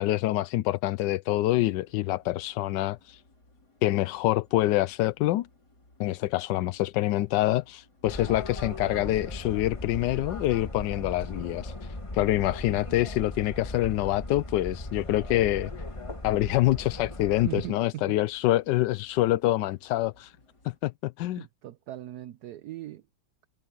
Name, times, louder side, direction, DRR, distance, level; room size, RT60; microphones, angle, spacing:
voice 1, 0.0-3.2 3.8-5.5 6.0-15.7 16.2-20.3 20.6-21.5, left 15 dB, 75° left, 1.1 m, -26 dB
sound 1, 1.5-20.8, left 2 dB, 50° left, 6.3 m, -62 dB
sound 2, 8.0-17.7, left 2 dB, 15° left, 1.5 m, -38 dB
voice 2, 17.4-18.2 21.4-23.0, right 14 dB, 65° right, 1.0 m, -39 dB
omnidirectional pair, 2.2 m